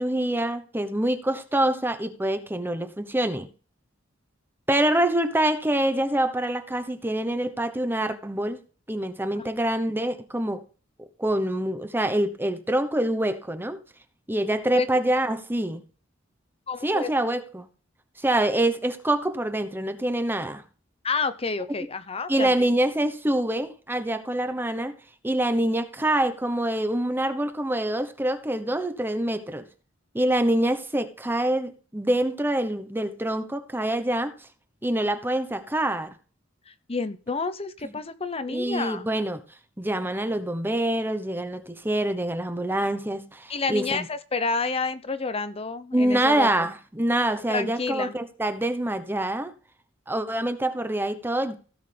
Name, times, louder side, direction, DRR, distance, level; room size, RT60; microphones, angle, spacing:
voice 1, 0.0-3.5 4.7-8.6 8.9-10.6 11.2-13.8 14.3-15.8 16.8-17.7 18.2-20.6 22.3-24.9 25.2-29.6 30.1-34.3 34.8-36.1 38.5-39.4 39.8-44.1 45.9-49.5 50.1-51.6, right 1 dB, 10° right, 1.0 m, -25 dB
voice 2, 16.7-17.1 21.0-22.7 36.7-39.0 43.5-46.5 47.5-48.1, left 4 dB, 30° left, 0.8 m, -29 dB
16.5 x 6.5 x 3.5 m
head